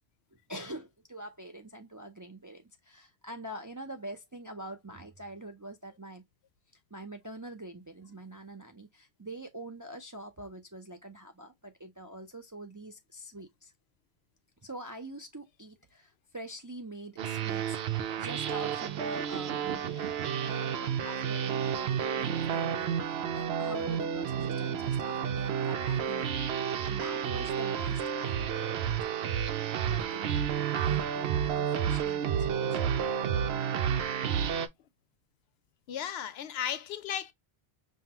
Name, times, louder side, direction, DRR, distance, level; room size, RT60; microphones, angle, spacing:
voice 1, 0.5-6.2 6.9-13.7 14.6-26.5 26.9-29.4 29.8-32.8, right 1 dB, 25° right, 0.4 m, -45 dB
sound 1, 17.2-34.7, right 8 dB, 75° right, 0.8 m, -31 dB
voice 2, 35.9-37.3, left 9 dB, 75° left, 0.8 m, -35 dB
5.5 x 2.3 x 2.8 m
omnidirectional pair, 1.1 m